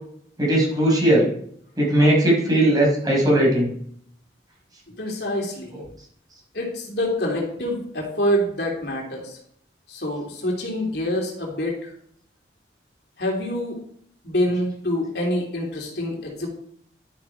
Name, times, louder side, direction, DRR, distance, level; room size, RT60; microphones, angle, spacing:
voice 1, 0.4-1.3 1.8-3.7 5.7-5.8, right 1 dB, 20° right, -3 dB, 5.5 m, -18 dB
voice 2, 4.9-5.7 6.5-9.4 9.9-11.9 13.2-13.8 14.2-16.5, equal, 65° left, 0 dB, 3.3 m, -26 dB
11.5 x 9.3 x 4.9 m, 0.65 s
head